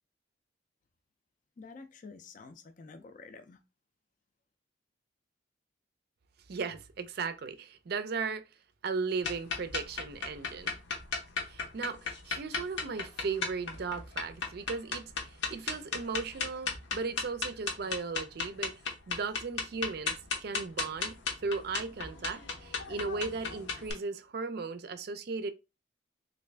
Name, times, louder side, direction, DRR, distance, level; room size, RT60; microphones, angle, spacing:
voice 1, 1.6-3.6, left 4 dB, 45° left, 0.4 m, -49 dB
voice 2, 6.5-8.4 8.8-10.7 11.5-18.7 19.1-20.2 20.4-25.5, right 4 dB, 55° right, 0.4 m, -36 dB
sound 1, 9.2-23.9, left 5 dB, 70° left, 0.8 m, -36 dB
3.4 x 2.5 x 3.2 m
head